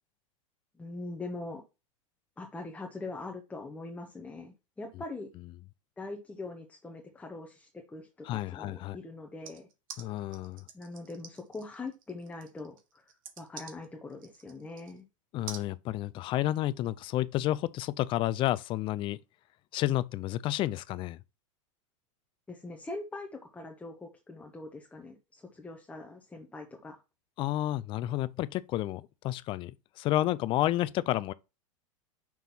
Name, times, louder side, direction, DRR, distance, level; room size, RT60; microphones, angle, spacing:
voice 1, 0.8-1.6 2.4-5.3 6.0-9.7 10.7-15.0 22.5-27.0, left 2 dB, 10° left, 0.8 m, -42 dB
voice 2, 8.3-9.0 10.0-10.6 15.3-19.2 19.7-21.2 27.4-31.3, left 14 dB, 30° left, 0.4 m, -30 dB
sound 1, 9.4-15.0 15.5-15.7, right 7 dB, 80° right, 1.4 m, -47 dB
5.9 x 3.1 x 5.5 m
supercardioid pair, 135°, 17 cm